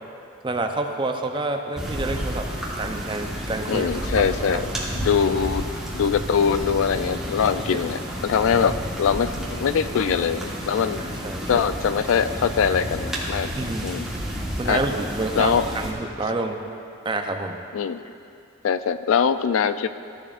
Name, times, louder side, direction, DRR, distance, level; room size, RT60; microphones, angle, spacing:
voice 1, 0.4-2.5 2.8-4.6 7.7-7.9 11.0-11.6 13.6-14.0 14.6-16.6 17.0-17.6, right 2 dB, 25° right, 4 dB, 0.5 m, -28 dB
sound 1, 1.8-15.9, equal, 5° right, 1.3 m, -31 dB
voice 2, 3.7-4.7 4.9-5.6 5.9-11.0 11.5-13.5 13.8-14.1 14.7-14.8 15.3-15.7 17.7-18.0 18.6-19.9, left 7 dB, 70° left, 12 dB, 0.3 m, -22 dB
14.0 x 10.5 x 2.4 m, 2.5 s
head